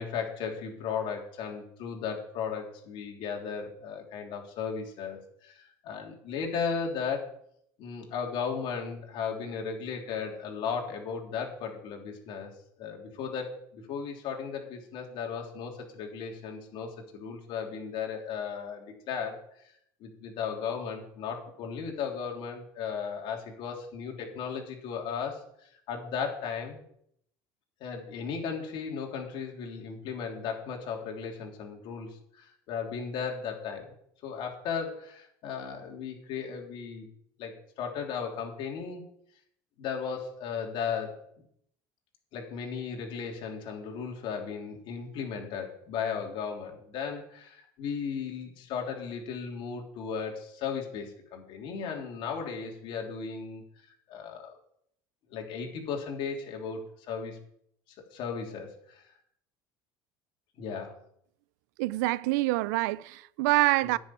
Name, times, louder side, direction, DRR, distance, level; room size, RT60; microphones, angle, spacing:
voice 1, 0.0-7.3 7.8-12.5 12.8-19.4 20.0-26.8 27.8-33.9 34.2-37.1 37.4-39.0 39.8-41.2 42.3-53.6 54.1-54.5 55.3-57.4 58.0-59.1 60.6-60.9 63.8-64.0, left 6 dB, 65° left, 3.2 m, -36 dB
voice 2, 61.8-64.0, right 19 dB, 85° right, 0.4 m, -26 dB
10.5 x 6.5 x 9.0 m
supercardioid pair, 100°, 9 cm